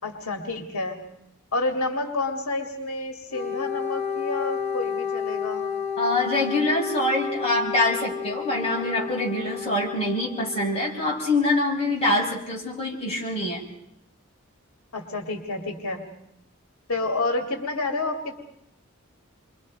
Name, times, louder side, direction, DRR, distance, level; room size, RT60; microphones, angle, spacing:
voice 1, 0.0-1.0 1.5-5.7 14.9-16.0 16.9-18.4, left 2 dB, 75° left, 4 dB, 2.3 m, -29 dB
Wind instrument woodwind instrument, 3.3-11.0, left 7 dB, 50° left, 2.4 m, -31 dB
voice 2, 6.0-13.6, left 2 dB, 30° left, -3 dB, 6.2 m, -25 dB
29.0 x 23.5 x 5.3 m, 0.80 s
head